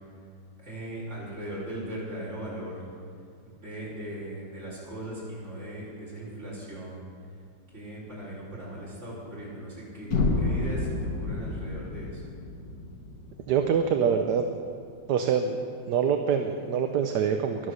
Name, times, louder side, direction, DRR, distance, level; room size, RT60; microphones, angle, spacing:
voice 1, 0.6-2.8 3.4-7.1 7.7-10.1 10.4-12.3, right 1 dB, 35° right, -7 dB, 5.0 m, -38 dB
sound 1, 10.1-14.1, left 3 dB, 55° left, 2.0 m, -30 dB
voice 2, 13.5-14.5 15.1-15.6 15.9-17.7, right 7 dB, 65° right, 6 dB, 1.3 m, -25 dB
23.5 x 8.2 x 6.5 m, 2.3 s
omnidirectional pair, 2.1 m